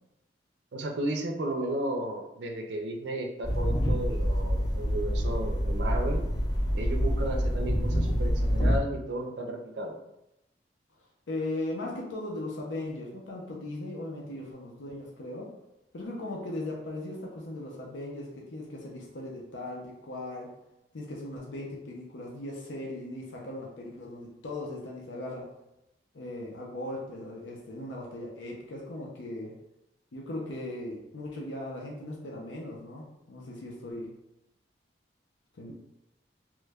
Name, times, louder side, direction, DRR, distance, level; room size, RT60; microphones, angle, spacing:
voice 1, 0.7-6.2 6.7-10.0, right 1 dB, 65° right, 3 dB, 0.5 m, -34 dB
sound 1, 3.4-8.8, equal, 20° left, 0.4 m, -27 dB
voice 2, 11.3-15.5 15.9-20.5 20.9-25.5 26.1-29.5 30.1-34.2 35.5-35.7, left 1 dB, 85° left, -2 dB, 0.6 m, -38 dB
3.1 x 2.2 x 3.4 m, 0.88 s
head